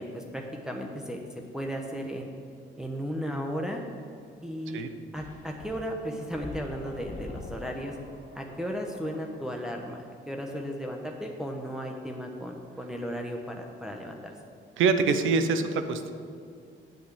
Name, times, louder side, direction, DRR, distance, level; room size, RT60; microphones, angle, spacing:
voice 1, 0.0-2.3 2.8-3.8 4.4-4.8 5.1-8.0 8.3-14.3, equal, 5° right, 1 dB, 1.0 m, -35 dB
sound 1, 5.2-9.7, left 2 dB, 40° left, 1.9 m, -45 dB
voice 2, 14.8-16.1, right 4 dB, 80° right, 9 dB, 0.8 m, -25 dB
8.1 x 6.5 x 8.3 m, 2.3 s
cardioid pair, 90°, 20 cm